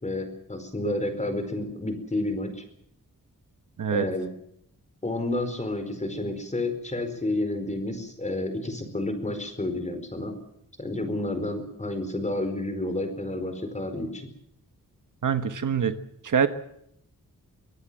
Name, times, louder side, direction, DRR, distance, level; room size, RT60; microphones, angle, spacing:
voice 1, 0.0-2.6 3.9-4.3 5.0-10.3 10.8-14.3, left 2 dB, 20° left, 8 dB, 4.6 m, -30 dB
voice 2, 15.2-16.0 16.2-16.5, right 7 dB, 65° right, 9 dB, 1.4 m, -24 dB
24.5 x 18.0 x 7.5 m, 0.74 s
wide cardioid pair, 140°, 34 cm